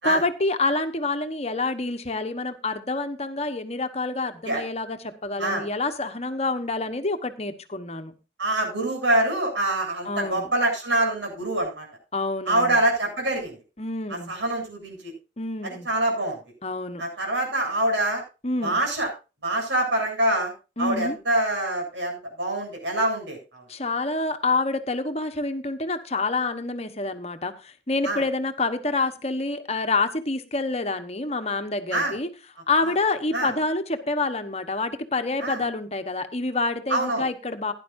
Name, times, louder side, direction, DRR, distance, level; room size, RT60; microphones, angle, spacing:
voice 1, 0.0-8.1 10.0-10.5 12.1-12.8 13.8-14.4 15.4-15.9 16.6-17.1 18.4-18.8 20.8-21.2 23.7-32.3 32.7-37.7, left 3 dB, 35° left, 8 dB, 1.2 m, -27 dB
voice 2, 8.4-11.9 12.5-13.6 14.3-15.1 15.6-16.4 17.0-18.2 18.6-19.1 19.4-20.5 20.8-23.6 28.0-28.2 31.9-32.1 32.8-32.9 33.3-33.5 35.4-35.6 36.9-37.2, right 1 dB, 90° right, 1 dB, 7.9 m, -25 dB
16.5 x 11.0 x 2.7 m, 0.31 s
head